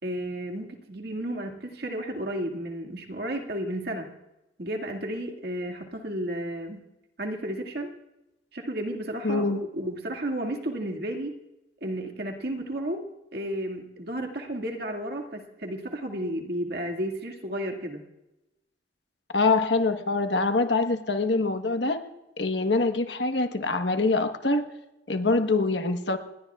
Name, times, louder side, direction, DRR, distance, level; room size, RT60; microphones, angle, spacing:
voice 1, 0.0-4.1 4.6-6.8 7.2-7.9 8.5-11.4 11.8-13.1 13.3-18.0, right 1 dB, 60° right, 2 dB, 2.1 m, -32 dB
voice 2, 9.2-9.6 19.3-22.0 22.4-24.6 25.1-26.2, left 3 dB, 70° left, 6 dB, 1.3 m, -24 dB
28.0 x 20.5 x 2.4 m, 0.95 s
head